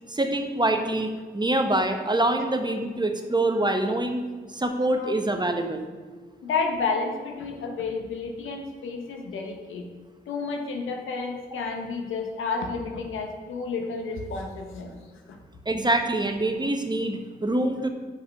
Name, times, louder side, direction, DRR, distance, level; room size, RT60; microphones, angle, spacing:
voice 1, 0.1-4.2 4.5-5.9 15.7-17.9, right 1 dB, 20° right, 5 dB, 1.1 m, -25 dB
voice 2, 6.4-9.9 10.3-14.9 15.3-15.4, left 4 dB, 90° left, 3 dB, 1.0 m, -31 dB
6.5 x 5.3 x 5.8 m, 1.5 s
supercardioid pair, 45°, 20 cm